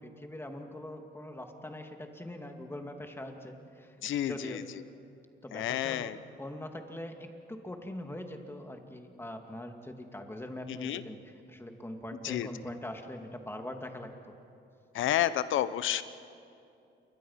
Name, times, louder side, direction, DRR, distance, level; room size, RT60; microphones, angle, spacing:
voice 1, 0.0-4.7 5.4-14.1, left 1 dB, 10° left, 4 dB, 2.5 m, -42 dB
voice 2, 4.0-4.6 5.5-6.2 10.8-11.0 12.2-12.5 14.9-16.0, left 12 dB, 80° left, 14 dB, 0.9 m, -30 dB
28.5 x 23.0 x 5.8 m, 2.6 s
cardioid pair, 90°, 20 cm